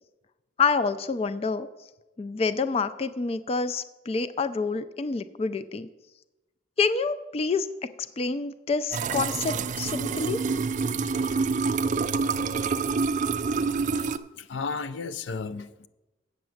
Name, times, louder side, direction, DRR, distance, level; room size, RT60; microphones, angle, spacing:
voice 1, 0.6-1.7 2.2-5.9 6.8-7.7 8.2-10.4, left 4 dB, 35° left, 0.3 m, -27 dB
sound 1, 8.9-14.2, right 4 dB, 45° right, 0.4 m, -27 dB
voice 2, 14.3-15.9, left 4 dB, 85° left, 0.5 m, -34 dB
8.0 x 5.9 x 7.7 m
head